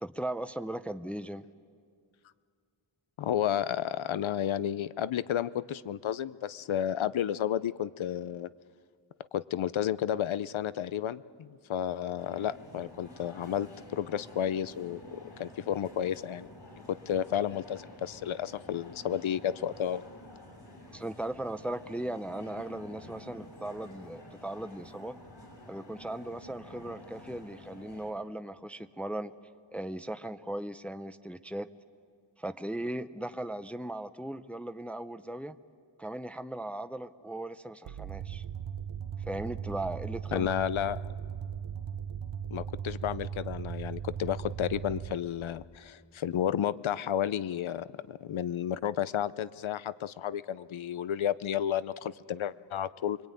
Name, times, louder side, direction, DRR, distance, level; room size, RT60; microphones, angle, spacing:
voice 1, 0.0-1.5 20.9-25.2 25.7-29.3 29.7-31.7 32.4-35.6 36.0-38.4 39.3-40.5, right 1 dB, 5° left, 10 dB, 0.6 m, -38 dB
voice 2, 3.2-8.5 9.3-16.5 16.9-20.0 40.3-41.1 42.5-53.2, left 10 dB, 80° left, 17 dB, 0.7 m, -32 dB
sound 1, 12.2-28.1, left 1 dB, 60° left, 6.8 m, -50 dB
sound 2, 37.9-45.2, right 8 dB, 75° right, 1.0 m, -38 dB
25.0 x 23.0 x 9.2 m, 2.2 s
wide cardioid pair, 95°, 47 cm